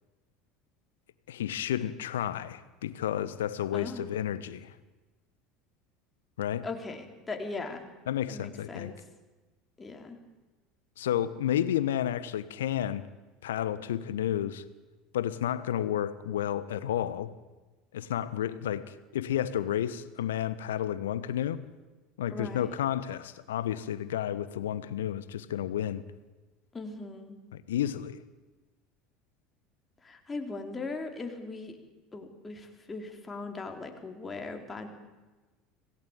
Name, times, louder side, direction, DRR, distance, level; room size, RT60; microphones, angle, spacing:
voice 1, 1.3-4.7 6.4-6.6 8.1-8.9 11.0-13.1 13.4-14.6 15.1-17.3 17.9-21.6 22.2-26.0 27.5-28.2, left 11 dB, 70° left, 16 dB, 1.2 m, -31 dB
voice 2, 3.7-4.1 6.6-7.9 8.3-9.0 9.8-10.2 22.3-22.7 26.7-27.4 30.0-31.8 32.1-34.9, left 3 dB, 20° left, 4 dB, 4.1 m, -39 dB
26.0 x 18.0 x 8.9 m, 1.2 s
figure-of-eight pair, 70°, 0 cm